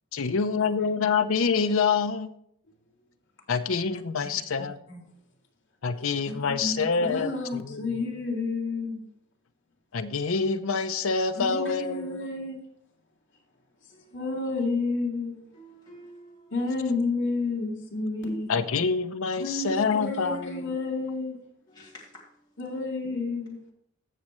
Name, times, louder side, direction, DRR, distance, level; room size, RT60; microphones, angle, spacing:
voice 1, 0.1-2.3 3.5-4.8 5.8-7.8 9.9-12.1 18.5-20.7, left 5 dB, 80° left, 0.6 m, -26 dB
voice 2, 6.3-6.7 7.0-9.0 11.3-12.6 14.1-15.4 16.5-18.5 19.4-21.4 22.6-23.6, left 3 dB, 60° left, 2.4 m, -30 dB
voice 3, 15.5-16.5 18.2-18.4 20.3-20.8 21.7-22.5, right 2 dB, 20° left, 2.6 m, -47 dB
16.0 x 6.4 x 3.1 m
head